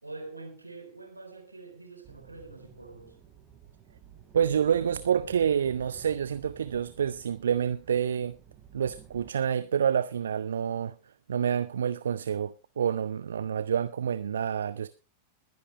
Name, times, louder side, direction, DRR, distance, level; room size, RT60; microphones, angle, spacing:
voice 1, 0.0-3.2, right 3 dB, 85° right, 3.7 m, -45 dB
sound 1, 2.0-9.3, right 8 dB, 30° right, 3.2 m, -52 dB
voice 2, 4.3-8.4 8.7-11.0 11.3-14.9, right 8 dB, 65° right, 0.5 m, -28 dB
21.0 x 10.5 x 3.1 m
figure-of-eight pair, 90°, 0 cm